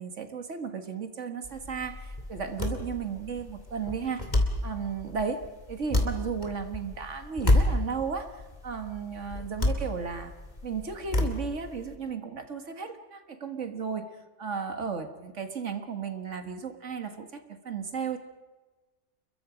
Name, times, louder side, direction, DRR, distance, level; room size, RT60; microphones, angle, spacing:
voice 1, 0.0-4.2 4.6-5.4 5.7-10.3 10.6-14.0 14.4-18.2, right 6 dB, 75° right, 7 dB, 2.0 m, -34 dB
sound 1, 1.4-11.9, left 1 dB, 35° left, 2.6 m, -30 dB
29.0 x 22.0 x 5.1 m, 1.3 s
omnidirectional pair, 1.3 m